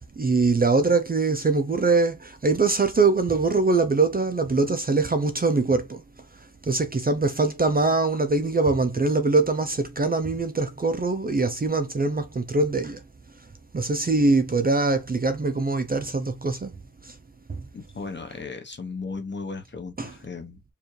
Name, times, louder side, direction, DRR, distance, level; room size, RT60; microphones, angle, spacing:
voice 1, 0.2-6.0 6.6-13.0 13.7-16.7 17.0-17.2 17.5-17.6 20.0-20.1, right 3 dB, 25° right, 0.6 m, -23 dB
voice 2, 17.7-20.6, left 4 dB, 30° left, 0.9 m, -36 dB
4.7 x 2.5 x 3.1 m
wide cardioid pair, 110°, 35 cm